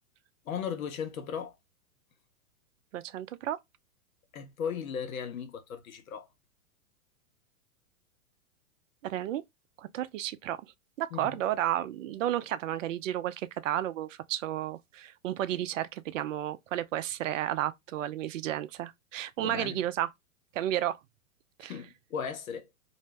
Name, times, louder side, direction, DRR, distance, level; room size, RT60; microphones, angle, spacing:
voice 1, 0.5-1.5 4.3-6.3 11.1-11.4 19.4-19.8 21.7-22.7, left 7 dB, 70° left, 0.9 m, -36 dB
voice 2, 2.9-3.6 9.0-9.4 9.8-10.6 11.0-20.1 20.5-21.0 21.6-21.7, right 12 dB, 65° right, 0.5 m, -32 dB
2.6 x 2.0 x 3.2 m
hypercardioid pair, 115°, 42 cm